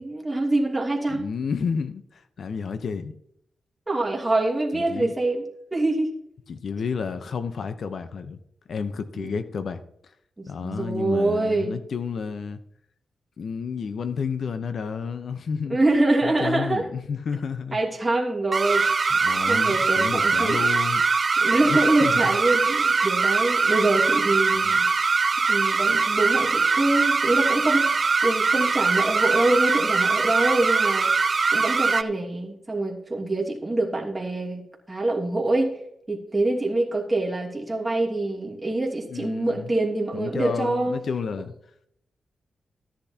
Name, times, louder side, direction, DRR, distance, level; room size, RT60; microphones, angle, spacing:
voice 1, 0.0-1.3 3.9-5.4 5.7-6.1 9.1-9.4 10.4-11.8 15.7-16.9 17.7-18.9 19.2-20.6 21.4-24.9 25.5-31.1 31.5-34.6 34.9-35.8 36.1-40.9, right 2 dB, 20° right, 2.8 m, -25 dB
voice 2, 1.1-3.1 4.7-5.1 6.5-8.4 8.7-9.8 10.5-12.6 13.4-15.8 16.2-17.8 19.1-21.0 21.7-22.2 24.5-24.8 39.1-39.7 40.1-41.5, left 6 dB, 70° left, 0.8 m, -31 dB
sound 1, 18.5-32.0, right 4 dB, 50° right, 0.4 m, -22 dB
14.0 x 10.5 x 2.9 m
cardioid pair, 80°, 0 cm